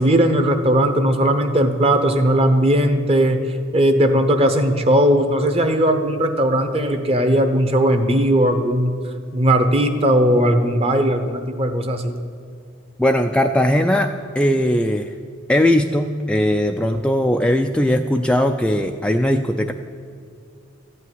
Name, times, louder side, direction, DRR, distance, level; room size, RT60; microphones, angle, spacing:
voice 1, 0.0-3.4 3.7-9.0 9.3-12.2, right 1 dB, 30° right, 7 dB, 0.9 m, -18 dB
voice 2, 13.0-14.1 14.4-15.1 15.5-19.7, left 1 dB, 5° left, 4 dB, 0.3 m, -19 dB
14.0 x 5.6 x 9.5 m, 2.5 s
head